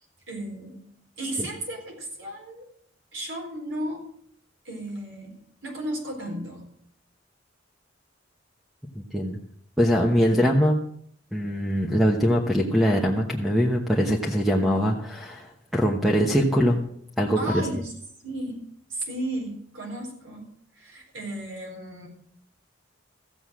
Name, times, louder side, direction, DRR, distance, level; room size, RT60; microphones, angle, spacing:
voice 1, 0.3-0.9 1.2-2.7 3.1-4.1 4.6-6.6 17.4-17.9 18.2-20.5 20.7-22.1, right 1 dB, 75° right, 1 dB, 4.2 m, -34 dB
voice 2, 8.9-9.4 9.8-10.8 11.3-16.8 17.2-17.6, equal, ahead, 0 dB, 1.0 m, -22 dB
14.5 x 7.9 x 6.2 m, 0.66 s
head